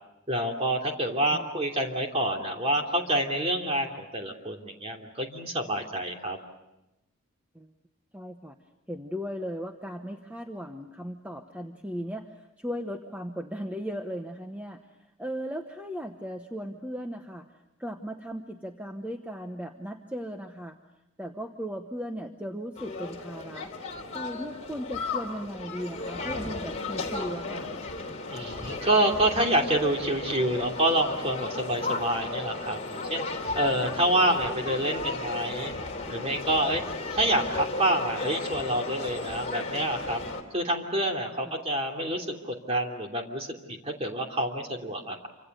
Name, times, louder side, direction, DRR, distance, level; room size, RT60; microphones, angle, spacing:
voice 1, 0.3-6.4 28.3-33.3 33.5-35.7 36.1-36.8 37.1-40.2 40.5-45.3, right 1 dB, 25° right, 2 dB, 3.0 m, -27 dB
voice 2, 8.1-8.5 8.9-14.8 15.2-17.5 17.8-20.8 21.2-23.7 24.1-27.7 41.4-41.6, equal, 5° right, 5 dB, 1.0 m, -37 dB
sound 1, 22.8-40.4, left 3 dB, 30° left, 3.1 m, -35 dB
27.5 x 26.0 x 6.7 m, 0.94 s
head